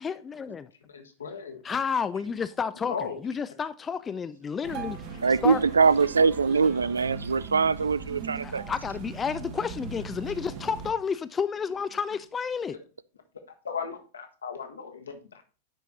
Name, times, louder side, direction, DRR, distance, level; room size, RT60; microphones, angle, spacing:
voice 1, 0.0-0.7 1.6-2.9 3.2-5.0 5.4-5.6 8.4-12.8, left 6 dB, 20° left, 0.4 m, -30 dB
voice 2, 0.8-1.6 2.7-3.2 6.5-6.6 13.6-15.4, left 6 dB, 70° left, 1.3 m, -37 dB
sound 1, 4.6-10.9, right 5 dB, 45° right, 1.4 m, -39 dB
voice 3, 5.2-8.6, right 5 dB, 75° right, 0.3 m, -23 dB
9.9 x 4.6 x 4.0 m
figure-of-eight pair, 90°, 0 cm